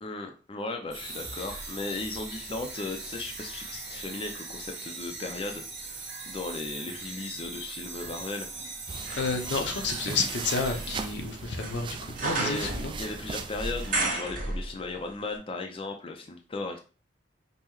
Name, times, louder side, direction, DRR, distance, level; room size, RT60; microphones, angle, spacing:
voice 1, 0.0-8.5 12.1-16.8, left 3 dB, 30° left, 3 dB, 0.4 m, -36 dB
sound 1, 0.9-11.4, right 3 dB, 70° right, 1.3 m, -40 dB
sound 2, 1.0-3.2 3.7-15.1 15.3-15.4, right 2 dB, 50° right, 1.2 m, -37 dB
sound 3, 8.9-14.0, right 4 dB, 30° right, 0.3 m, -39 dB
voice 2, 9.2-12.9, left 4 dB, 70° left, 4 dB, 0.7 m, -30 dB
5.4 x 2.1 x 3.0 m, 0.35 s
head